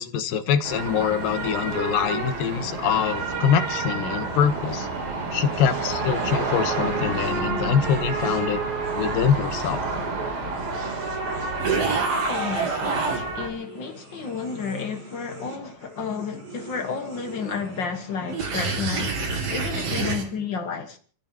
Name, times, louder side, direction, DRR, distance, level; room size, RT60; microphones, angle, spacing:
voice 1, 0.0-4.9 5.3-8.6 8.9-9.8, left 8 dB, 80° left, 2.8 m, -24 dB
sound 1, 0.6-13.5, right 3 dB, 85° right, 5.2 m, -29 dB
sound 2, 2.5-4.9 5.2-13.2 13.6-20.2, right 4 dB, 45° right, 3.2 m, -32 dB
voice 2, 11.6-21.0, left 5 dB, 45° left, 1.6 m, -32 dB
29.5 x 14.0 x 3.0 m
omnidirectional pair, 3.9 m